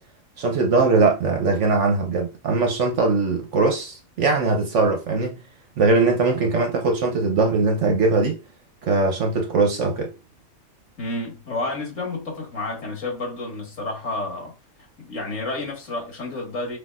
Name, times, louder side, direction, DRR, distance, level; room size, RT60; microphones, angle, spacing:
voice 1, 0.4-5.4 5.8-8.4 8.8-10.1, right 3 dB, 65° right, 1.0 m, -21 dB
voice 2, 11.0-14.5 15.1-16.8, left 2 dB, 65° left, 2.2 m, -30 dB
5.2 x 4.1 x 2.4 m
omnidirectional pair, 1.4 m